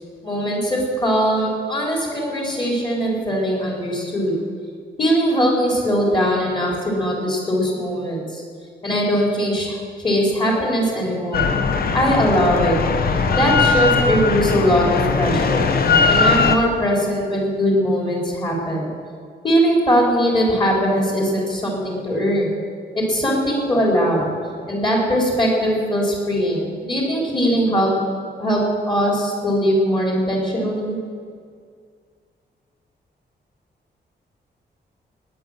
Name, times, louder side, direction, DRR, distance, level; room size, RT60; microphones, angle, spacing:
voice 1, 0.2-4.3 5.0-8.4 8.8-9.8 10.0-11.5 11.9-12.8 13.3-15.6 16.1-18.9 19.4-22.5 22.9-24.3 24.7-27.9 28.4-28.6 28.9-31.0, equal, 25° left, -2 dB, 4.2 m, -20 dB
Drill, 11.3-16.6, left 4 dB, 55° left, 1.1 m, -19 dB
19.0 x 9.5 x 7.4 m, 2.1 s
wide cardioid pair, 170°, 18 cm